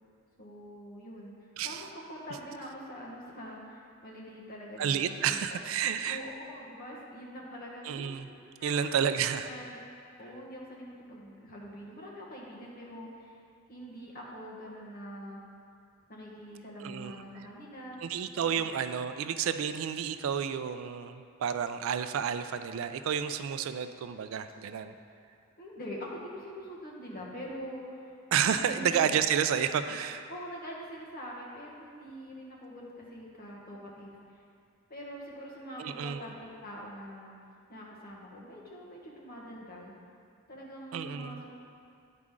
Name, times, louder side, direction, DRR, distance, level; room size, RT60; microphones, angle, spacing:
voice 1, 0.4-5.6 6.1-8.1 8.6-9.1 9.4-13.4 13.7-15.4 16.1-18.0 18.6-18.7 25.6-28.2 28.4-29.2 30.3-34.4 34.9-37.3 37.7-39.9 40.5-41.5, equal, 45° left, -4 dB, 1.3 m, -44 dB
voice 2, 4.8-6.2 7.9-8.3 8.6-9.5 16.8-17.1 18.0-24.9 28.3-30.3 35.8-36.2 40.9-41.4, right 8 dB, 65° right, 10 dB, 0.3 m, -30 dB
9.5 x 5.0 x 3.7 m, 2.4 s
head